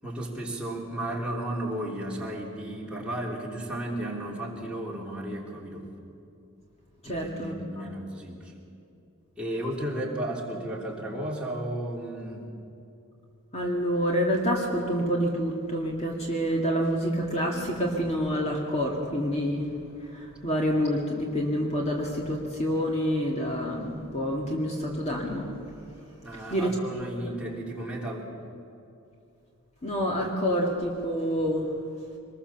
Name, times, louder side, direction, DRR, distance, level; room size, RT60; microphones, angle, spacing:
voice 1, 0.0-5.9 7.0-8.5 9.4-12.5 26.2-28.3, right 1 dB, 5° right, -4 dB, 3.2 m, -34 dB
voice 2, 7.0-7.8 13.5-25.5 26.3-26.8 29.8-31.8, equal, 30° left, -1 dB, 2.2 m, -28 dB
25.0 x 20.5 x 7.1 m, 2.7 s
head